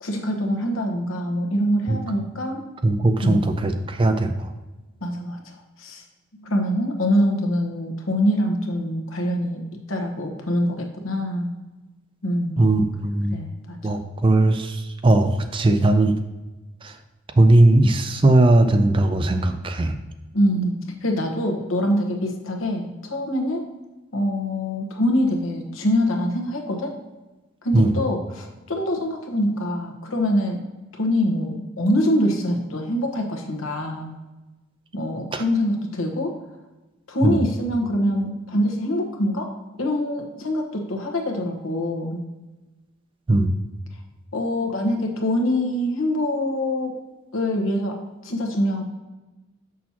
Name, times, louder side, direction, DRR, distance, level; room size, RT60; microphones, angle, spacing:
voice 1, 0.0-2.6 3.2-3.5 5.0-6.0 6.3-11.5 12.2-12.8 13.3-13.9 20.3-23.6 24.1-27.0 27.6-30.6 30.9-34.1 34.9-36.3 37.1-39.5 39.8-42.2 44.3-47.0 47.3-48.8, equal, 85° left, 3 dB, 1.1 m, -24 dB
voice 2, 2.8-4.5 12.6-13.4 13.8-16.1 16.8-16.9 17.4-19.9 27.7-27.9 35.3-35.4 37.2-37.4 43.3-43.5, right 2 dB, 25° right, 8 dB, 0.4 m, -18 dB
7.1 x 6.3 x 2.9 m, 1.1 s
head